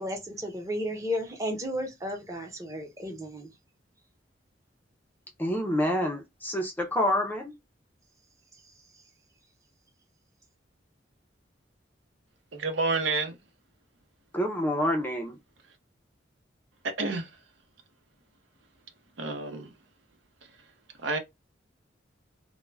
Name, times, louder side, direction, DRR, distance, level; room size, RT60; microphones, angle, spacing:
voice 1, 0.0-3.5, equal, 15° right, 0.7 m, -33 dB
voice 2, 5.4-7.5 14.3-15.4, left 1 dB, 10° left, 0.4 m, -27 dB
voice 3, 12.5-13.4 17.0-17.3 19.2-19.7 21.0-21.2, right 3 dB, 80° right, 0.7 m, -29 dB
2.2 x 2.1 x 3.2 m
head